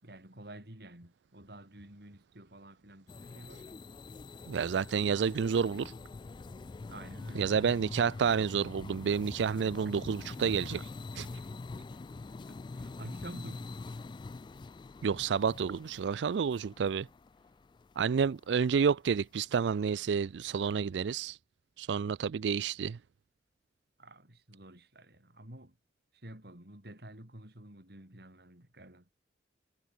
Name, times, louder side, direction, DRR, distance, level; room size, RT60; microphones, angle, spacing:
voice 1, 0.0-3.7 6.9-7.5 12.5-13.7 24.0-25.8 26.1-29.1, right 1 dB, 65° right, 4.7 m, -50 dB
sound 1, 3.1-18.4, left 3 dB, 25° left, 0.3 m, -45 dB
voice 2, 4.5-5.9 7.3-11.3 15.0-17.1 18.0-21.4 21.8-23.0, right 6 dB, 90° right, 0.4 m, -30 dB
head